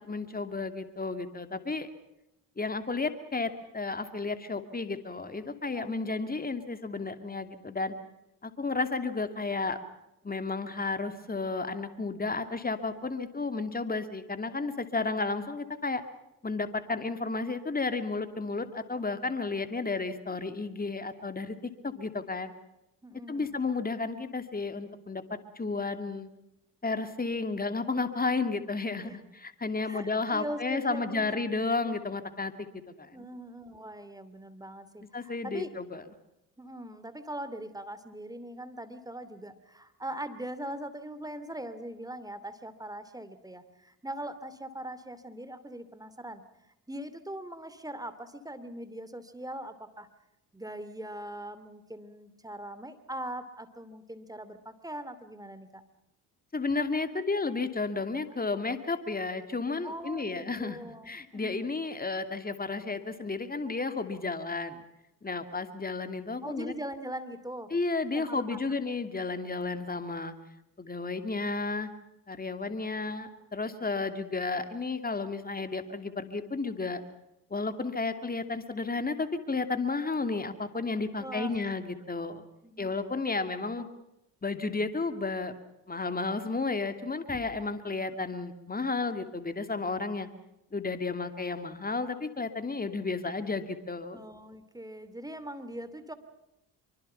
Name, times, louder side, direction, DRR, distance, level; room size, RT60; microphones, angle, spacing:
voice 1, 0.0-1.9 2.6-7.9 8.4-9.8 10.2-16.0 16.4-22.5 23.3-26.3 26.8-32.7 33.0-33.3 35.1-36.0 56.5-64.8 65.2-66.7 67.7-70.3 70.8-71.9 72.3-77.0 77.5-82.4 82.8-83.9 84.4-85.5 85.9-90.3 90.7-94.2, left 3 dB, 20° left, 9 dB, 2.7 m, -32 dB
voice 2, 23.0-23.6 29.0-29.2 29.8-31.4 31.7-31.9 33.1-35.7 36.6-46.4 46.9-50.1 50.5-55.8 59.8-61.6 66.4-67.7 68.1-68.8 81.2-81.6 82.6-82.9 94.1-96.1, right 1 dB, 10° right, 12 dB, 2.7 m, -41 dB
25.0 x 24.0 x 5.8 m, 0.87 s
hypercardioid pair, 55°, 43 cm